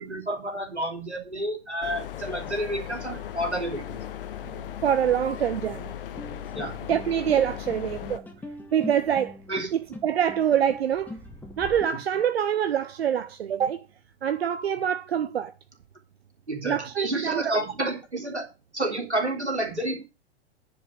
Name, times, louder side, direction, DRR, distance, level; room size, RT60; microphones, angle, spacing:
voice 1, 0.0-4.0 6.5-6.7 9.5-9.7 16.5-18.5 18.7-20.0, right 1 dB, 90° right, 3.1 m, -30 dB
sound 1, 1.8-8.2, left 11 dB, 55° left, 1.1 m, -37 dB
voice 2, 4.8-5.9 6.9-8.3 8.7-9.4 9.7-11.2 11.6-13.9 14.2-15.5 16.6-17.5, right 9 dB, 65° right, 0.7 m, -25 dB
sound 2, 6.2-11.9, left 1 dB, 5° left, 1.4 m, -42 dB
10.5 x 5.3 x 6.2 m
figure-of-eight pair, 105°, 33 cm